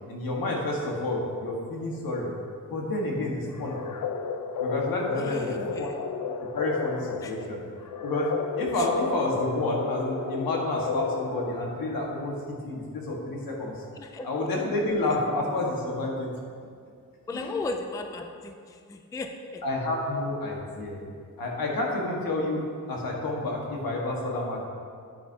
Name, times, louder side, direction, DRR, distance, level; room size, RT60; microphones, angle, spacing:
voice 1, 0.1-2.3 2.7-3.8 4.6-5.9 6.5-7.6 8.0-8.3 8.6-13.8 14.2-16.3 17.3-17.7 19.6-21.0 21.4-22.6 22.9-24.6, left 2 dB, 80° left, -2 dB, 1.6 m, -29 dB
sound 1, 3.5-12.0, left 5 dB, 65° left, 0.6 m, -32 dB
voice 2, 5.2-6.0 7.2-7.3 14.0-14.3 17.3-18.5 18.9-19.6, left 3 dB, 10° left, 5 dB, 0.3 m, -35 dB
9.3 x 9.0 x 2.8 m, 2.2 s
wide cardioid pair, 175°, 35 cm